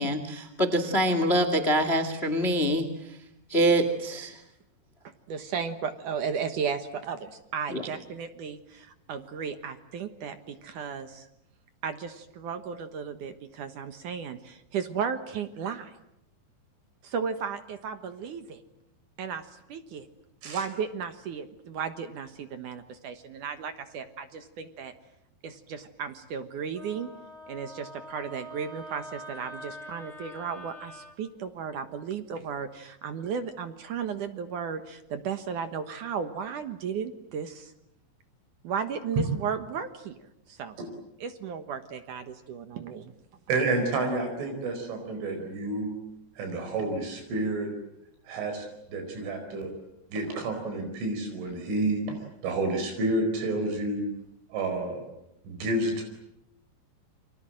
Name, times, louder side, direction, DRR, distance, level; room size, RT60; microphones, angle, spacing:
voice 1, 0.0-2.9 3.5-4.4 7.7-7.8, right 1 dB, 60° left, 10 dB, 0.6 m, -25 dB
voice 2, 5.3-11.3 11.8-15.9 17.0-18.6 19.2-20.1 20.4-24.9 25.4-27.1 27.5-37.7 38.6-40.2 40.5-40.8 41.2-43.1, right 6 dB, 65° right, 9 dB, 2.0 m, -35 dB
Wind instrument woodwind instrument, 26.8-31.2, equal, 15° left, 3.6 m, -44 dB
voice 3, 43.5-46.0 46.4-47.7 48.3-49.7 50.1-52.2 52.4-54.1 54.5-55.0 55.5-56.0, right 2 dB, 85° right, 6 dB, 7.1 m, -29 dB
29.5 x 26.0 x 7.7 m, 0.82 s
omnidirectional pair, 5.4 m